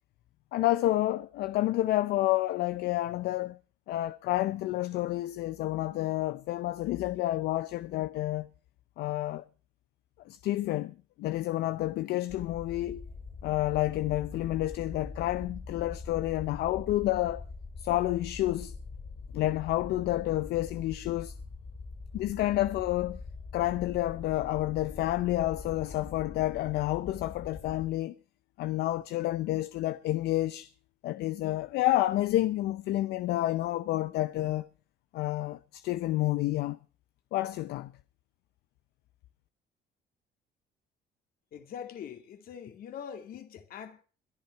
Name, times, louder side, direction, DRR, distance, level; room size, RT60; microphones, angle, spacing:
voice 1, 0.5-3.6 3.9-8.5 9.0-9.4 10.3-13.1 13.4-17.4 17.8-18.7 19.3-21.3 22.1-23.2 23.5-28.1 28.6-30.7 31.0-34.7 35.1-36.8 37.3-37.9, left 15 dB, 75° left, 0.6 m, -29 dB
sound 1, 12.3-27.9, left 4 dB, 30° left, 2.6 m, -43 dB
voice 2, 41.5-44.0, left 8 dB, 60° left, 2.4 m, -43 dB
21.5 x 10.5 x 4.5 m
cardioid pair, 110°, 17 cm